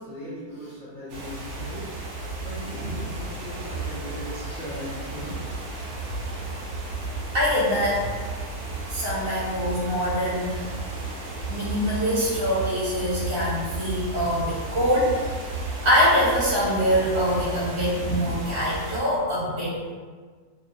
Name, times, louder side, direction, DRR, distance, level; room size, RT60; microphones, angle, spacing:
voice 1, 0.0-1.9 2.4-5.4, left 1 dB, 80° left, -10 dB, 0.4 m, -38 dB
sound 1, 1.1-19.0, right 2 dB, 65° right, 0.8 m, -33 dB
voice 2, 7.3-8.0 8.9-10.6 11.5-15.2 15.8-19.8, equal, 40° right, -8 dB, 1.0 m, -24 dB
2.7 x 2.6 x 2.5 m, 1.5 s
omnidirectional pair, 1.7 m